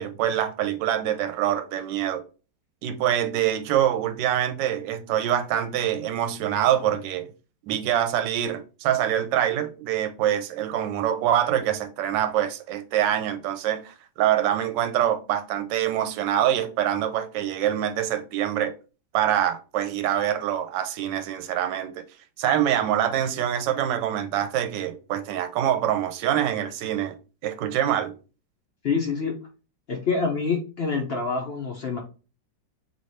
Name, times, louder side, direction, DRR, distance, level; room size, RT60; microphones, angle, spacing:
voice 1, 0.0-2.2 2.8-7.3 7.7-18.7 19.1-22.0 22.4-27.2 27.4-28.1, right 11 dB, 80° right, 1.2 m, -25 dB
voice 2, 28.8-29.3 29.9-32.0, left 4 dB, 70° left, 0.5 m, -26 dB
3.2 x 3.0 x 4.1 m
omnidirectional pair, 2.0 m